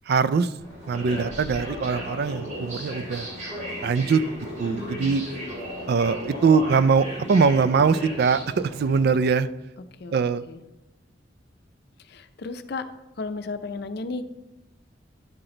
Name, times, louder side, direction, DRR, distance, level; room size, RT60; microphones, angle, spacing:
voice 1, 0.1-0.5 0.9-3.3 3.8-4.2 4.6-5.2 5.9-9.5 10.1-10.4, right 5 dB, 60° right, 15 dB, 0.4 m, -22 dB
sound 1, 0.6-9.2, equal, 40° right, 3.2 m, -36 dB
voice 2, 4.7-5.1 10.0-10.2 10.5-10.6 12.1-12.9 13.2-14.2, left 3 dB, 60° left, 9 dB, 0.6 m, -34 dB
11.0 x 6.0 x 3.8 m, 0.97 s
head